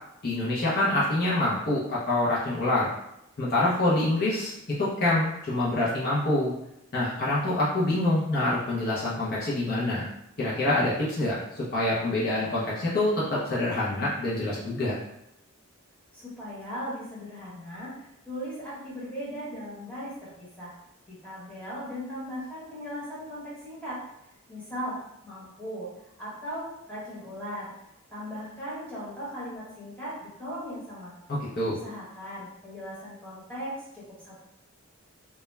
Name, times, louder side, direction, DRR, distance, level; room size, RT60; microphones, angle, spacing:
voice 1, 0.2-2.9 3.4-6.5 6.9-10.1 10.4-14.9 31.3-31.8, left 1 dB, 45° left, -8 dB, 0.5 m, -26 dB
voice 2, 16.1-20.7 21.1-24.0 24.5-25.0 25.2-25.9 26.2-27.7 28.1-31.1 31.7-34.3, equal, 5° left, -10 dB, 1.0 m, -38 dB
2.2 x 2.1 x 3.0 m, 0.81 s
head